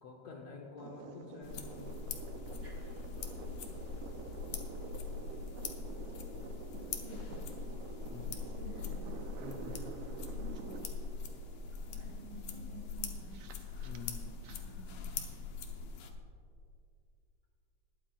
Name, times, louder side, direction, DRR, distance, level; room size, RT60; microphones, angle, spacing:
voice 1, 0.0-1.9 8.1-8.4 9.4-9.8 13.8-14.4, left 4 dB, 65° left, -1 dB, 1.9 m, -48 dB
sound 1, 0.8-14.6, right 5 dB, 75° right, 2.0 m, -49 dB
sound 2, 1.4-16.1, left 5 dB, 85° left, 1.3 m, -42 dB
voice 2, 6.7-7.5 8.3-9.3 10.3-10.8 11.7-14.1 14.5-15.3, right 2 dB, 45° right, -4 dB, 2.0 m, -52 dB
20.5 x 9.7 x 2.4 m, 2.4 s
omnidirectional pair, 3.8 m